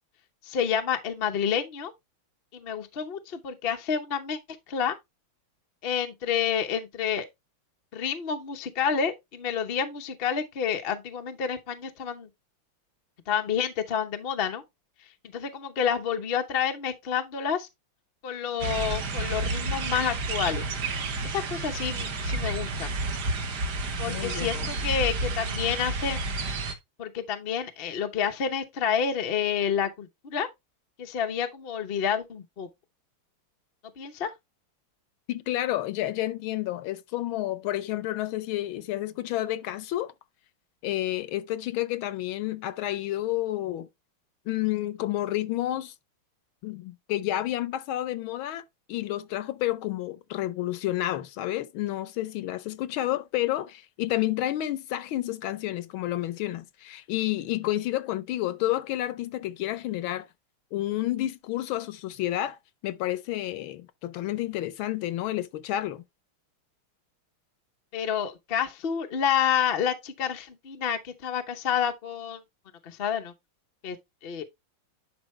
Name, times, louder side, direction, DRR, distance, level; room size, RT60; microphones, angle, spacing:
voice 1, 0.4-1.9 2.5-4.4 4.7-5.0 5.8-7.3 7.9-12.3 13.3-14.6 15.3-17.7 18.2-20.7 21.2-22.9 24.0-26.2 27.0-30.5 31.0-32.7 34.0-34.3 67.9-72.4 72.8-73.3 73.8-74.0 74.2-74.4, left 8 dB, 60° left, 0.6 m, -29 dB
Beach Birds Ambience, 18.6-26.7, right 3 dB, 55° right, 1.6 m, -30 dB
voice 2, 24.0-24.7 35.3-40.1 40.8-43.9 44.5-45.9 46.6-48.6 48.9-60.3 60.7-66.0, left 14 dB, 75° left, 1.4 m, -30 dB
11.0 x 4.4 x 3.1 m
omnidirectional pair, 2.4 m